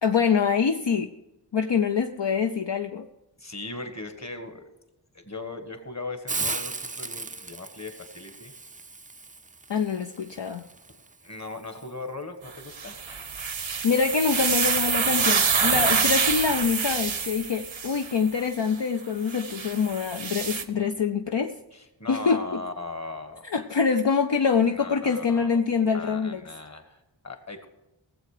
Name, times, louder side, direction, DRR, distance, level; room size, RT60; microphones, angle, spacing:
voice 1, 0.0-1.1 1.5-3.1 9.7-10.6 13.8-21.5 22.1-22.4 23.5-26.4, left 6 dB, 65° left, 5 dB, 0.6 m, -25 dB
voice 2, 3.4-4.7 5.1-8.5 10.9-11.0 11.2-13.0 21.7-23.4 24.7-25.6 25.9-27.7, left 3 dB, 35° left, 7 dB, 1.5 m, -38 dB
Hiss, 6.3-11.9, right 3 dB, 20° right, 0.4 m, -37 dB
sound 1, 12.7-18.2 19.3-20.6, right 5 dB, 85° right, 0.9 m, -26 dB
18.0 x 7.6 x 4.9 m, 0.98 s
wide cardioid pair, 40°, 46 cm